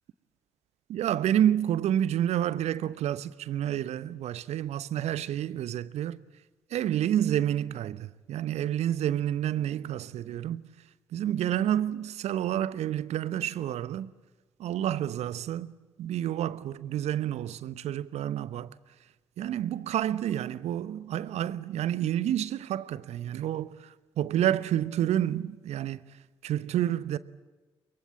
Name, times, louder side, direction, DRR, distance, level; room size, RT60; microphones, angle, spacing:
voice 1, 0.9-6.2 6.7-10.6 11.1-14.1 14.6-15.7 16.0-18.7 19.4-23.8 24.2-26.0 26.4-27.2, right 11 dB, 65° right, 1.0 m, -29 dB
23.5 x 22.5 x 8.5 m
figure-of-eight pair, 40°, 12 cm